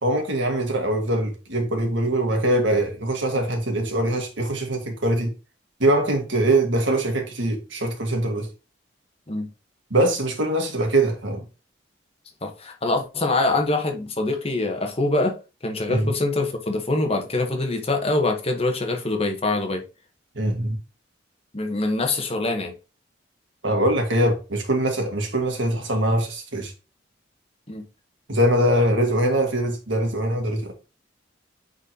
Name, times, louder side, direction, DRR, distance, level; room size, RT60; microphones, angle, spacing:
voice 1, 0.0-5.3 5.8-8.5 9.9-11.4 15.9-16.1 20.3-20.8 23.6-26.7 28.3-30.7, right 1 dB, 75° right, 1.7 m, -22 dB
voice 2, 12.4-15.4 15.6-19.8 21.5-22.7 27.7-27.8, left 2 dB, 30° left, 1.1 m, -24 dB
8.9 x 3.9 x 2.9 m
head